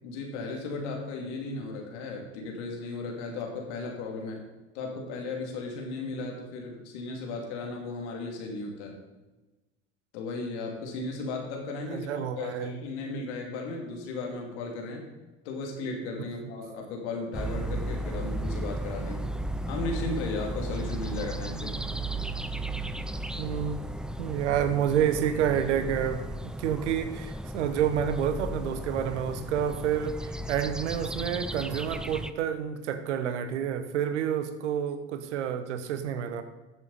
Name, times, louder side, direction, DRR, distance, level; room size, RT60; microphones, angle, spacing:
voice 1, 0.0-4.4 4.7-9.0 10.1-12.1 12.4-15.1 15.4-19.3 19.7-21.7, left 3 dB, 75° left, 1 dB, 2.7 m, -35 dB
voice 2, 11.9-12.8 23.4-23.8 24.2-36.4, right 9 dB, 85° right, 11 dB, 1.0 m, -29 dB
sound 1, 17.3-32.3, right 1 dB, ahead, 0.5 m, -35 dB
13.5 x 7.6 x 4.2 m, 1.1 s
hypercardioid pair, 75°, 34 cm